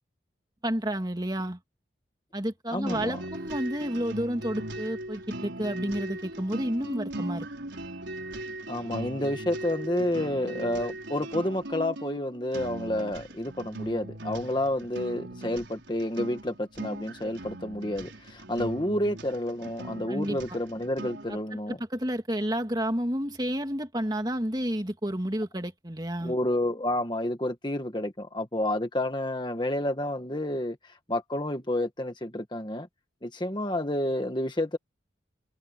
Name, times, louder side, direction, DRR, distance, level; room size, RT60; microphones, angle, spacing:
voice 1, 0.6-1.6 2.3-7.5 20.1-20.6 21.3-21.4 21.7-26.3, equal, 20° right, 2.6 m, -30 dB
voice 2, 2.7-3.2 8.7-21.8 26.2-32.9 33.2-34.8, left 1 dB, 25° left, 1.6 m, -30 dB
sound 1, 2.9-21.4, right 1 dB, 80° right, 4.8 m, -39 dB
head